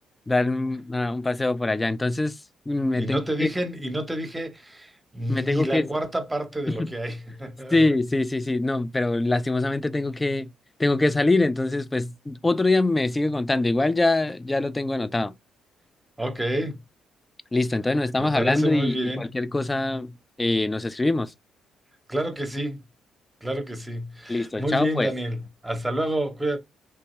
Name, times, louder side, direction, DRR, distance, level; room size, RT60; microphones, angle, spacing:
voice 1, 0.3-2.4 2.7-3.5 5.3-5.9 6.7-6.9 7.7-10.5 10.8-15.3 17.5-21.3 24.3-25.1, left 2 dB, 15° left, 0.4 m, -24 dB
voice 2, 2.9-7.8 16.2-16.8 18.2-19.3 22.1-22.8 23.4-26.6, right 1 dB, 10° right, 0.9 m, -29 dB
3.5 x 2.7 x 3.0 m
cardioid pair, 90°, 0 cm